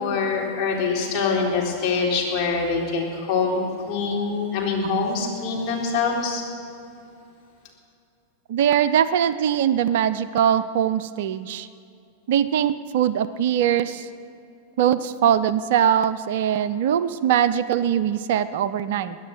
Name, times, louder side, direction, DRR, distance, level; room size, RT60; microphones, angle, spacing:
voice 1, 0.0-6.4, left 4 dB, 35° left, -3 dB, 3.8 m, -24 dB
voice 2, 8.5-11.7 12.3-14.1 14.8-19.2, right 9 dB, 55° right, 14 dB, 0.5 m, -21 dB
22.0 x 9.7 x 6.0 m, 2.6 s
figure-of-eight pair, 90°, 0 cm